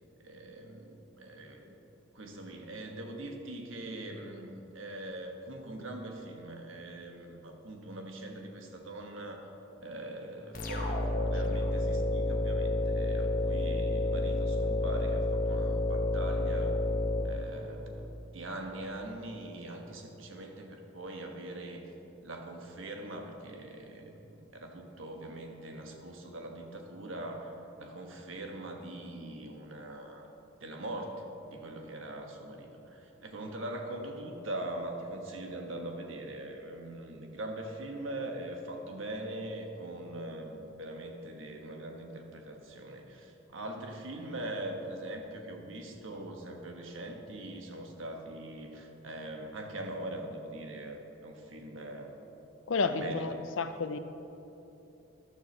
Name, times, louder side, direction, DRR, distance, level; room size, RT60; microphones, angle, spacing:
voice 1, 0.2-1.7 2.1-9.5 9.8-16.8 17.2-21.8 22.2-30.3 30.6-52.2 52.8-53.4, right 1 dB, 85° right, 2 dB, 1.3 m, -42 dB
sound 1, 10.5-18.0, left 2 dB, 45° left, 1.2 m, -30 dB
voice 2, 52.7-54.0, left 4 dB, 80° left, 10 dB, 0.6 m, -31 dB
13.0 x 11.5 x 3.3 m, 3.0 s
head